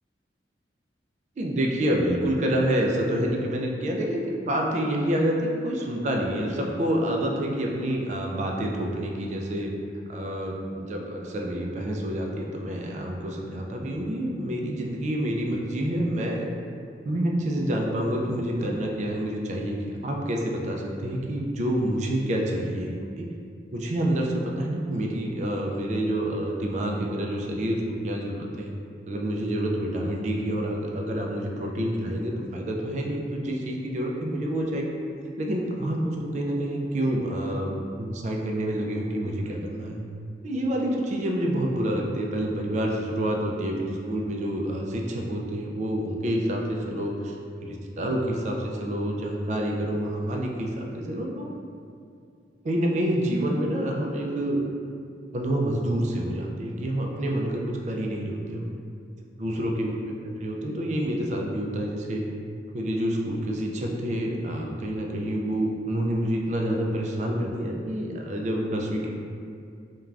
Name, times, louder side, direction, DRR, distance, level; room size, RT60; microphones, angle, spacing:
voice 1, 1.4-9.7 10.1-16.5 17.0-19.8 20.0-23.3 23.7-28.7 29.1-34.8 35.4-40.0 40.4-47.4 47.6-51.5 52.6-54.6 55.3-58.7 59.4-60.0 60.4-62.2 62.7-69.1, right 1 dB, 40° right, 0 dB, 0.3 m, -28 dB
2.4 x 2.2 x 3.1 m, 2.3 s
head